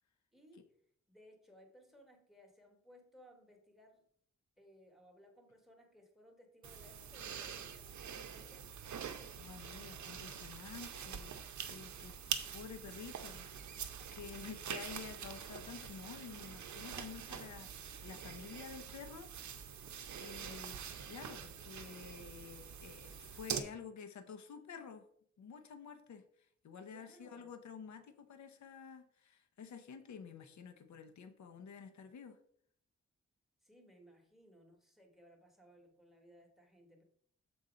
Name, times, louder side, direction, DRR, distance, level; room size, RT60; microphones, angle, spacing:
voice 1, 0.3-0.7 1.1-4.0 4.6-8.7 26.9-27.5 33.6-37.0, equal, ahead, 3 dB, 1.1 m, -62 dB
sound 1, 6.6-23.6, right 8 dB, 80° right, 0.7 m, -45 dB
voice 2, 9.4-13.5 14.1-19.3 20.2-25.0 25.4-32.4, left 6 dB, 75° left, 8 dB, 0.8 m, -50 dB
7.1 x 3.9 x 4.9 m, 0.64 s
wide cardioid pair, 170°, 29 cm